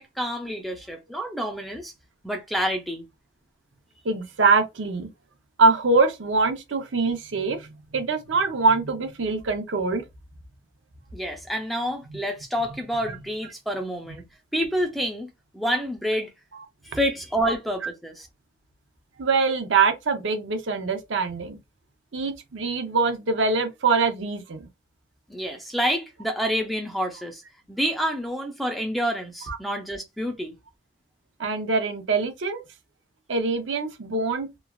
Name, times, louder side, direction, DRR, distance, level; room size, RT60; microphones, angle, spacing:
voice 1, 0.0-1.9 2.2-3.0 11.1-14.2 14.5-16.3 16.8-18.3 25.3-27.4 27.7-30.5, equal, ahead, 0.4 m, -28 dB
voice 2, 4.0-5.1 5.6-7.7 7.9-10.0 19.2-21.6 22.1-24.6 29.5-29.6 31.4-32.6 33.3-34.5, right 4 dB, 80° right, 0.6 m, -23 dB
3.0 x 2.3 x 2.3 m
head